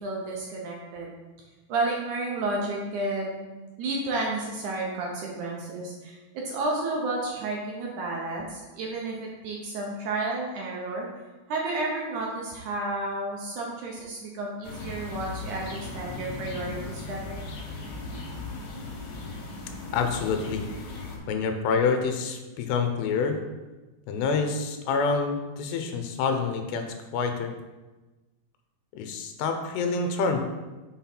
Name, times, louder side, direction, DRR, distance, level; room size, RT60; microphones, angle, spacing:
voice 1, 0.0-1.1 1.7-3.5 3.8-6.2 6.5-11.1 11.5-17.4, right 2 dB, 75° right, -2 dB, 1.8 m, -31 dB
sound 1, 14.6-21.2, left 3 dB, 70° left, 2.8 m, -37 dB
voice 2, 19.9-20.7 21.3-23.4 24.1-26.9 27.1-27.5 28.9-30.4, left 5 dB, 90° left, 5 dB, 2.9 m, -27 dB
6.1 x 5.7 x 4.4 m, 1.2 s
omnidirectional pair, 4.7 m